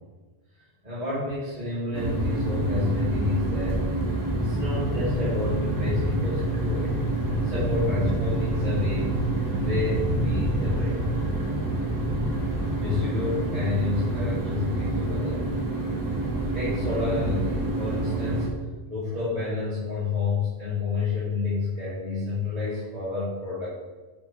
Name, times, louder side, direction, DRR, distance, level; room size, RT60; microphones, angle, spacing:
voice 1, 0.8-3.8 4.3-6.9 7.4-9.2 9.5-11.0 12.8-15.5 16.5-18.5 18.9-23.7, left 3 dB, 40° right, -10 dB, 1.9 m, -29 dB
sound 1, 1.9-18.5, right 1 dB, 20° right, 1.1 m, -27 dB
6.1 x 3.3 x 5.1 m, 1.3 s
omnidirectional pair, 1.1 m